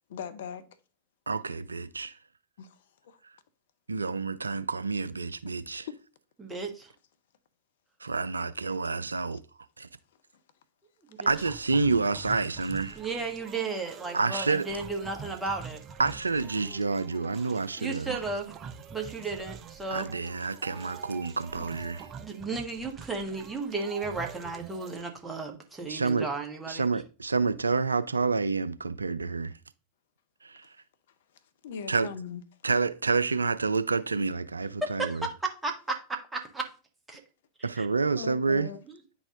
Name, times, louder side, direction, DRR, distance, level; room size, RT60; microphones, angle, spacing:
voice 1, 0.1-0.7 2.6-3.2 5.5-5.6 5.9-6.0 8.0-8.1 9.2-9.3 31.6-32.4 38.1-38.8, left 6 dB, 60° left, 0.7 m, -40 dB
voice 2, 1.3-2.2 3.9-5.9 8.0-9.4 9.8-9.9 11.3-13.0 14.1-14.7 16.0-18.1 19.9-22.1 25.9-26.3 26.7-29.5 30.4-30.7 31.9-32.1 32.6-35.2 37.6-38.7, right 4 dB, 75° right, 0.3 m, -28 dB
voice 3, 6.4-6.9 11.2-11.3 12.9-15.8 17.8-18.5 18.9-20.1 22.2-26.8 34.8-36.7 37.1-37.2 37.6-37.9, right 3 dB, 10° right, 1.6 m, -34 dB
sound 1, 11.3-25.0, right 6 dB, 30° right, 0.7 m, -45 dB
9.7 x 4.1 x 3.7 m
figure-of-eight pair, 90°, 0 cm